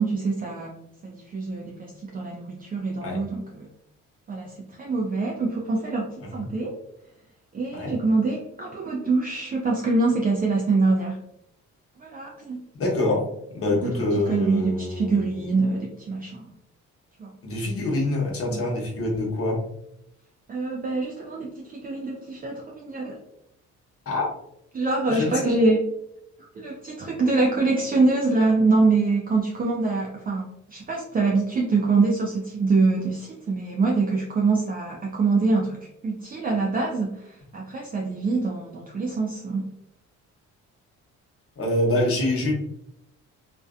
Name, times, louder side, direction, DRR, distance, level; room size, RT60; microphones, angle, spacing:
voice 1, 0.0-3.7 4.3-6.8 7.5-11.2 12.0-12.6 13.7-16.5 17.2-17.3 18.5-18.6 20.5-23.2 24.7-25.8 26.5-35.8 36.0-39.7, right 3 dB, 30° right, -1 dB, 0.4 m, -25 dB
voice 2, 12.8-13.2 13.5-15.3 17.4-19.6 24.1-24.3 25.1-25.7 41.6-42.5, left 1 dB, 50° left, -1 dB, 0.9 m, -25 dB
2.5 x 2.1 x 2.4 m, 0.79 s
cardioid pair, 90°, 30 cm